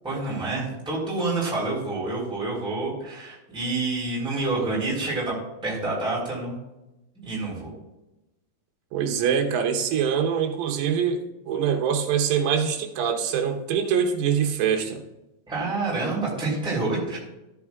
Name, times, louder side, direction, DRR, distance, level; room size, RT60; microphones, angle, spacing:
voice 1, 0.0-5.3 5.6-6.6 7.1-7.8 15.5-17.2, right 3 dB, ahead, -6 dB, 2.6 m, -28 dB
voice 2, 8.9-15.0, right 7 dB, 80° right, 4 dB, 2.9 m, -24 dB
14.5 x 8.4 x 2.3 m, 0.98 s
omnidirectional pair, 4.7 m